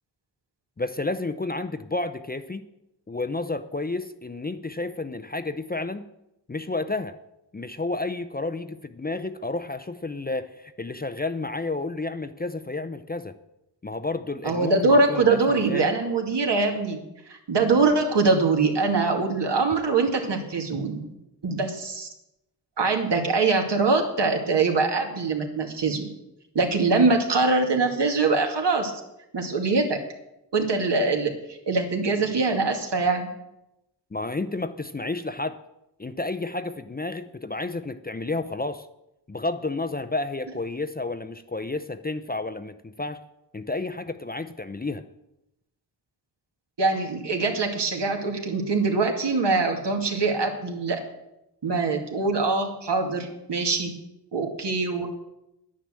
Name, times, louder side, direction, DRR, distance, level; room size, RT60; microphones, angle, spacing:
voice 1, 0.8-2.6 3.1-6.1 6.5-7.2 7.5-13.3 13.8-15.8 34.1-35.6 36.0-38.9 39.3-43.2 43.5-45.0, left 2 dB, 20° left, 10 dB, 0.6 m, -31 dB
voice 2, 14.4-17.0 17.3-21.1 21.4-22.1 22.8-26.1 26.5-28.9 29.3-30.0 30.5-33.3 46.8-51.0 51.6-53.9 54.3-55.1, right 3 dB, 70° right, 3 dB, 2.3 m, -23 dB
10.0 x 10.0 x 7.5 m, 0.87 s
wide cardioid pair, 105°, 43 cm